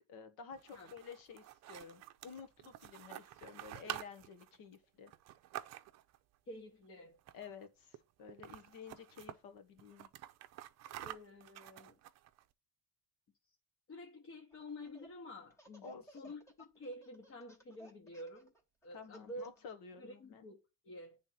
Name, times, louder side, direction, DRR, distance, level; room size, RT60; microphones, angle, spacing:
voice 1, 0.1-5.1 7.3-10.1 15.8-16.3 18.9-20.4, left 6 dB, 85° left, 1.4 m, -52 dB
sound 1, 0.5-6.2 7.2-7.7 7.9-8.0 8.3-9.4 9.8-12.4, right 13 dB, 50° right, 0.6 m, -49 dB
voice 2, 6.5-7.2 11.0-12.0 13.9-18.5 18.8-19.4 20.0-21.2, left 1 dB, 40° left, 1.2 m, -50 dB
Laughter, 14.5-15.1 15.5-19.7, right 2 dB, 10° left, 1.0 m, -59 dB
9.3 x 3.6 x 5.8 m
cardioid pair, 175°, 34 cm